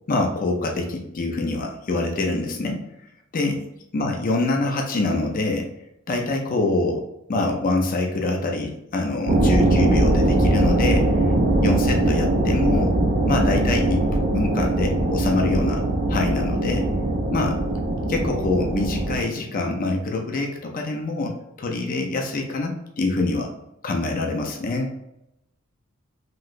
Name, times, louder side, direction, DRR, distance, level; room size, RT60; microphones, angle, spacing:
voice 1, 0.1-2.8 3.3-3.6 3.9-5.7 6.1-11.1 11.6-13.0 13.3-15.8 16.1-16.9 17.3-17.6 18.1-23.5 23.8-24.9, left 2 dB, 45° left, 2 dB, 0.4 m, -25 dB
sound 1, 9.3-19.2, right 1 dB, 45° right, 0.5 m, -21 dB
3.1 x 2.8 x 2.5 m, 0.85 s
head